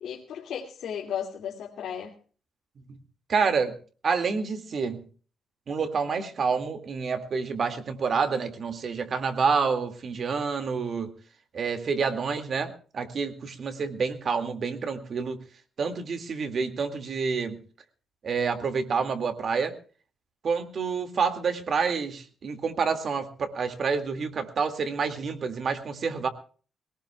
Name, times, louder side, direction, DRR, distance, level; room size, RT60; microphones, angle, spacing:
voice 1, 0.0-2.1, left 8 dB, 80° left, 0 dB, 2.4 m, -35 dB
voice 2, 3.3-3.7 4.0-5.0 5.7-11.1 11.5-15.4 15.8-17.6 18.2-19.7 20.4-26.3, right 5 dB, 45° right, 7 dB, 2.1 m, -28 dB
22.0 x 18.5 x 2.3 m, 0.40 s
cardioid pair, 155°, 0 cm